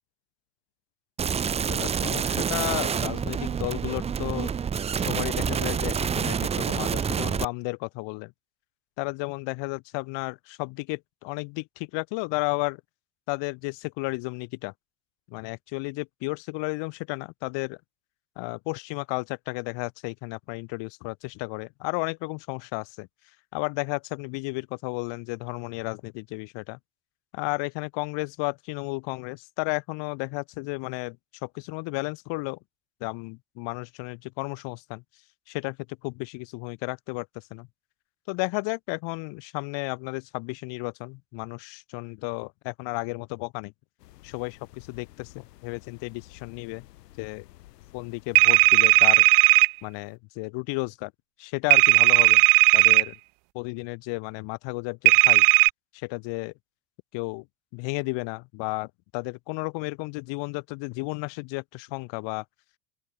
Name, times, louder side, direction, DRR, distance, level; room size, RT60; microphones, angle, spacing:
sound 1, 1.2-7.4, right 7 dB, 15° right, 0.4 m, -27 dB
voice 1, 1.6-4.5 5.0-8.3 9.0-12.8 13.3-14.7 15.3-17.8 18.4-23.1 23.5-26.8 27.3-31.2 31.4-32.6 33.0-35.0 35.5-35.8 36.0-37.7 38.3-43.7 44.2-46.9 47.2-47.4 47.9-49.2 49.8-51.1 51.4-52.4 52.7-53.1 53.5-55.4 55.9-56.5 57.1-57.4 57.7-62.4, left 27 dB, 65° left, 2.9 m, -33 dB
sound 2, 44.0-49.1, left 16 dB, 90° left, 5.8 m, -52 dB
sound 3, 48.4-49.7 51.7-53.0 55.1-55.7, right 38 dB, 60° right, 0.6 m, -16 dB
open air
supercardioid pair, 110°, 47 cm